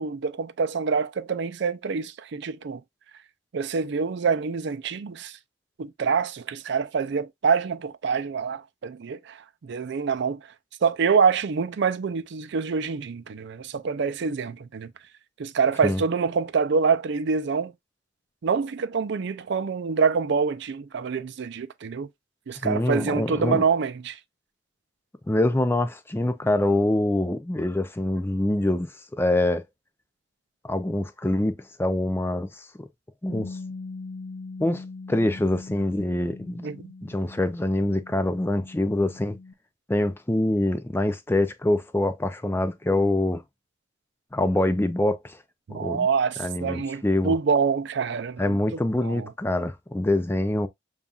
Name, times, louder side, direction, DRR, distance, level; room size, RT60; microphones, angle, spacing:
voice 1, 0.0-2.8 3.5-5.4 5.8-10.4 10.8-14.9 15.4-17.7 18.4-22.1 22.5-24.2 36.6-36.9 45.7-49.3, right 5 dB, 60° right, 0.4 m, -26 dB
voice 2, 22.6-23.6 25.3-29.6 30.6-32.9 33.2-33.6 34.6-36.7 37.0-39.4 39.9-43.4 44.3-45.4 45.7-46.1 46.4-47.3 48.4-50.7, left 1 dB, 10° left, 0.4 m, -25 dB
Bass guitar, 33.3-39.5, left 3 dB, 60° left, 0.6 m, -41 dB
6.9 x 2.4 x 2.3 m
head